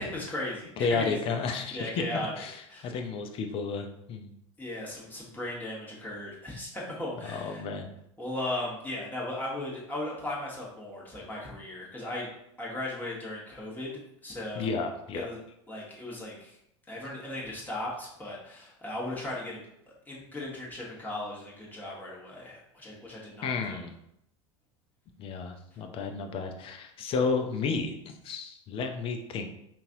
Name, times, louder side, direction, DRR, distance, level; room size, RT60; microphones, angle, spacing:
voice 1, 0.0-1.2 1.5-2.9 4.6-7.6 8.2-12.3 12.6-14.8 15.1-15.4 15.7-16.6 16.9-19.6 20.1-23.8, left 1 dB, 10° left, -5 dB, 1.4 m, -37 dB
voice 2, 0.8-4.3 7.3-7.9 14.6-15.3 23.4-23.9 25.2-29.5, left 4 dB, 35° left, 5 dB, 0.6 m, -32 dB
5.4 x 2.6 x 2.7 m, 0.77 s
figure-of-eight pair, 75°, 16 cm